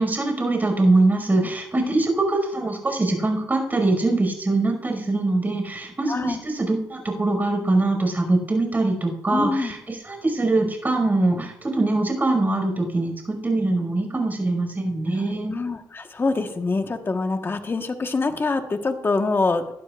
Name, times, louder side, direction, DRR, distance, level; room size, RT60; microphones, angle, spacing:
voice 1, 0.0-15.5, right 2 dB, 25° right, 2 dB, 5.4 m, -23 dB
voice 2, 6.1-6.4 9.3-9.7 15.5-19.6, left 3 dB, 30° left, 6 dB, 1.3 m, -25 dB
18.5 x 12.0 x 2.5 m, 0.82 s
cardioid pair, 85°, 7 cm